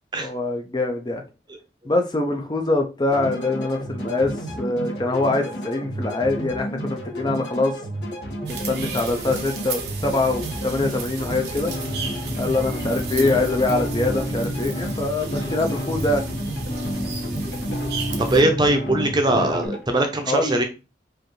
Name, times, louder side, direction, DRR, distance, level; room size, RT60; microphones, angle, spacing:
voice 1, 0.2-1.2 1.9-7.8 8.5-11.7 12.4-16.2 20.3-20.6, left 2 dB, 25° left, 0.4 m, -24 dB
sound 1, 3.1-19.8, right 1 dB, 80° left, 1.4 m, -32 dB
sound 2, 8.5-18.4, right 4 dB, 70° right, 0.7 m, -34 dB
sound 3, 11.7-19.7, left 1 dB, 45° left, 0.9 m, -31 dB
voice 2, 18.2-20.6, right 1 dB, 25° right, 0.6 m, -21 dB
4.9 x 2.6 x 3.1 m
head